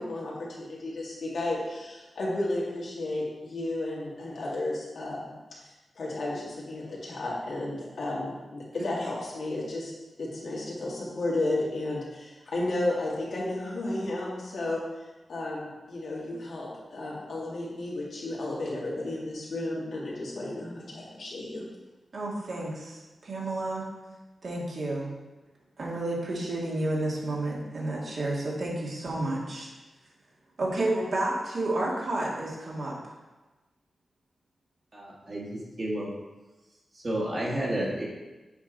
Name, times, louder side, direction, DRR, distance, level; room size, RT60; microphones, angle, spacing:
voice 1, 0.0-5.3 6.0-9.9 10.2-14.8 15.3-21.7, left 2 dB, 80° left, -5 dB, 2.2 m, -33 dB
voice 2, 22.1-23.8 24.4-25.1 25.8-29.7 30.6-32.9, right 2 dB, 65° right, -4 dB, 2.0 m, -30 dB
voice 3, 34.9-36.1 36.9-38.0, right 1 dB, 45° right, -6 dB, 1.9 m, -31 dB
8.1 x 5.0 x 3.9 m, 1.2 s
wide cardioid pair, 90°, 0 cm